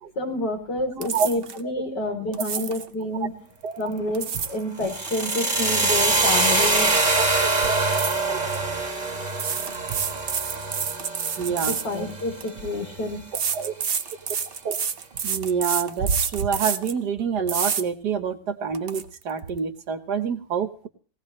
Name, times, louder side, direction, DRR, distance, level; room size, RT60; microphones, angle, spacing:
voice 1, 0.2-3.3 3.8-6.9 11.6-13.2, left 1 dB, 75° left, 3 dB, 4.3 m, -28 dB
sound 1, 1.0-1.6 2.3-2.9 3.9-4.6 4.9-6.8 7.1-7.3 7.9-8.6 9.3-12.5 13.3-17.0 17.5-17.8 18.3-18.4 18.7-19.0, right 7 dB, 45° right, 0.8 m, -29 dB
voice 2, 1.0-1.3 3.2-3.3 3.6-3.8 7.1-7.8 8.3-8.6 11.4-11.8 13.3-13.7 14.6-14.8 15.2-20.9, right 6 dB, 65° right, 9 dB, 1.7 m, -27 dB
sound 2, 4.8-12.8, right 3 dB, 25° right, 2.3 m, -24 dB
19.5 x 17.5 x 3.2 m, 0.40 s
omnidirectional pair, 1.9 m